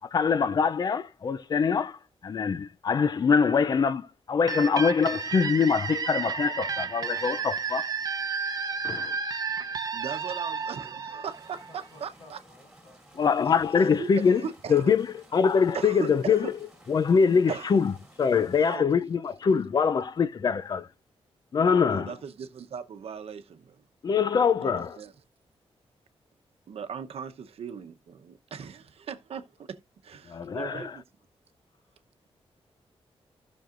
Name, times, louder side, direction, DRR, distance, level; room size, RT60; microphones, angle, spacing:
voice 1, 0.1-2.0 2.2-7.9 8.8-9.2 13.2-14.4 14.7-15.1 15.3-16.5 16.9-17.9 18.2-20.9 21.5-22.1 24.0-25.0 30.3-30.8, left 6 dB, 40° left, 0.5 m, -24 dB
sound 1, 4.5-12.0, right 5 dB, 40° right, 0.8 m, -32 dB
voice 2, 8.6-9.0 11.7-13.2, left 2 dB, 65° left, 4.5 m, -56 dB
voice 3, 9.9-12.4 13.7-14.9 15.7-16.5 17.5-17.8 18.6-18.9 21.8-23.8 24.6-25.1 26.7-31.0, right 7 dB, 70° right, 0.9 m, -39 dB
sound 2, 11.2-18.8, right 1 dB, 5° right, 3.3 m, -55 dB
16.0 x 6.3 x 2.5 m
wide cardioid pair, 170°, 10 cm